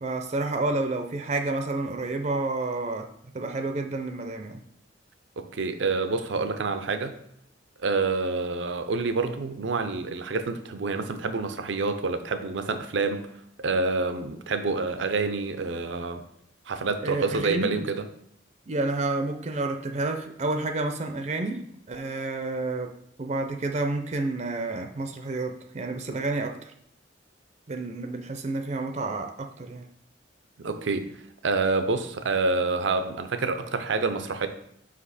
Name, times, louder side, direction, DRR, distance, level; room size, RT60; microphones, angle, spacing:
voice 1, 0.0-3.1 3.3-4.6 17.0-17.9 18.7-22.9 23.2-26.7 27.7-29.9, right 2 dB, 35° right, 6 dB, 0.5 m, -30 dB
voice 2, 5.4-7.1 7.8-13.3 13.6-16.2 16.7-18.1 30.6-31.1 31.4-34.5, right 3 dB, 80° right, 9 dB, 0.6 m, -27 dB
5.4 x 5.0 x 4.1 m, 0.71 s
head